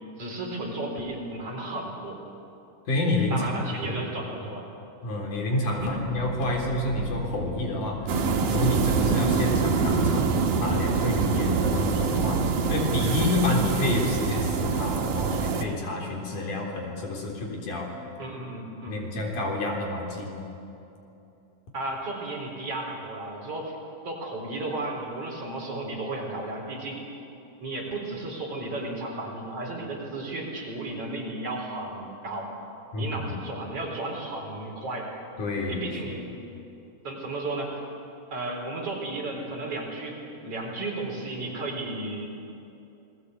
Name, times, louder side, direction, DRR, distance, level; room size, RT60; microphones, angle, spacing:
voice 1, 0.2-2.2 3.3-4.7 5.8-6.0 18.2-19.0 21.7-23.8 24.0-27.0 27.6-32.5 33.0-35.1 35.7-36.3 37.0-37.9 38.3-42.3, right 2 dB, 45° right, -1 dB, 5.2 m, -34 dB
voice 2, 2.9-4.5 5.0-10.4 10.6-17.9 18.9-20.4 32.9-33.3 35.4-35.9, left 1 dB, 70° left, 0 dB, 5.3 m, -29 dB
sound 1, 5.8-15.9 16.2-17.0 17.4-17.5, left 1 dB, 35° left, 3.6 m, -41 dB
sound 2, 8.1-15.6, right 5 dB, 80° right, 3.4 m, -25 dB
28.5 x 20.5 x 8.2 m, 2.7 s
omnidirectional pair, 3.8 m